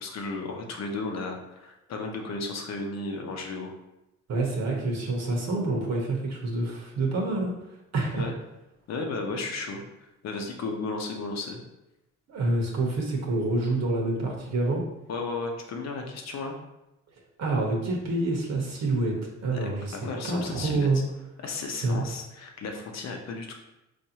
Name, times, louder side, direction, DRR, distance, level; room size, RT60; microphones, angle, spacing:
voice 1, 0.0-3.7 8.1-8.3 8.9-11.6 15.1-16.6 19.5-20.9 21.4-23.5, left 3 dB, 60° left, 3 dB, 0.8 m, -34 dB
voice 2, 4.3-7.5 7.9-8.3 12.3-14.8 17.4-20.0 20.2-21.0 21.8-22.1, right 2 dB, 60° right, 0 dB, 0.9 m, -27 dB
4.8 x 2.6 x 2.8 m, 0.91 s
cardioid pair, 90°, 30 cm